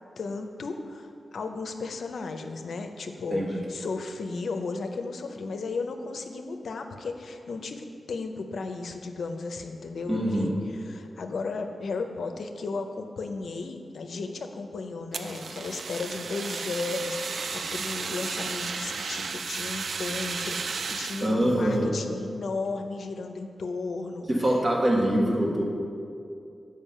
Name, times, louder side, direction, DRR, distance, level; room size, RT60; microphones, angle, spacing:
voice 1, 0.2-24.6, left 3 dB, 80° left, 6 dB, 0.5 m, -35 dB
voice 2, 3.3-3.6 10.1-10.5 21.2-21.9 24.3-25.6, right 1 dB, 40° right, -2 dB, 1.5 m, -24 dB
Fire, 15.1-21.3, right 4 dB, 75° right, 0.3 m, -33 dB
7.2 x 5.2 x 5.4 m, 2.5 s
cardioid pair, 65°, 0 cm